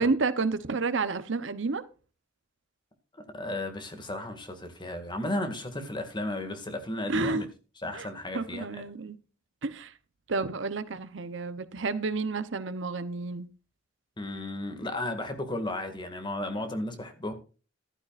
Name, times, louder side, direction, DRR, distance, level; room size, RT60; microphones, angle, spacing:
voice 1, 0.0-1.8 7.1-7.5 7.9-8.1 8.3-9.2 9.6-9.9 10.3-13.5, right 3 dB, 65° right, 0.8 m, -30 dB
voice 2, 3.1-7.5 7.8-8.7 14.2-17.3, left 1 dB, 25° left, 2.0 m, -34 dB
14.0 x 12.5 x 2.5 m
head